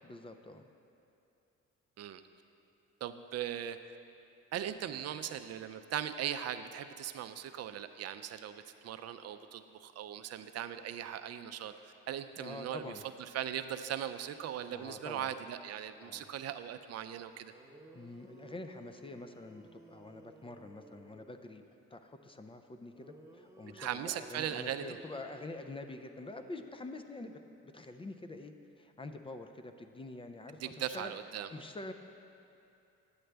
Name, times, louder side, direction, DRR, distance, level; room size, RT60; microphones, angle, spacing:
voice 1, 0.0-0.7 12.4-13.0 14.7-15.3 16.0-16.3 17.9-21.6 21.9-31.1 31.5-31.9, left 2 dB, 20° left, 7 dB, 0.3 m, -46 dB
voice 2, 3.0-3.8 4.5-12.9 13.3-17.5 23.8-24.8 30.6-31.5, right 10 dB, 55° right, 10 dB, 0.4 m, -39 dB
sound 1, 17.5-21.7 22.9-27.0, right 2 dB, 10° right, 0.8 m, -57 dB
9.5 x 7.6 x 3.4 m, 2.7 s
cardioid pair, 90°, 30 cm